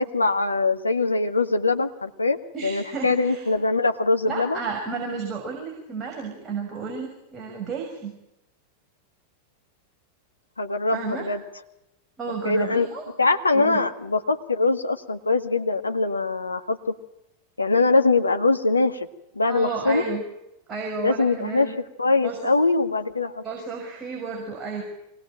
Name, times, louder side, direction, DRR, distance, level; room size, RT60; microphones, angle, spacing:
voice 1, 0.0-4.6 10.6-11.4 12.5-12.9 13.2-17.0 17.6-19.1 19.4-20.0 21.0-23.4, left 3 dB, 80° left, 7 dB, 1.6 m, -22 dB
voice 2, 2.5-3.5 4.3-8.2 10.9-11.2 12.2-13.0 13.5-13.8 19.5-20.2 20.7-21.7 22.2-22.5 23.4-24.8, right 4 dB, 20° right, 1 dB, 6.2 m, -32 dB
24.0 x 19.5 x 9.0 m, 0.87 s
figure-of-eight pair, 90°, 0 cm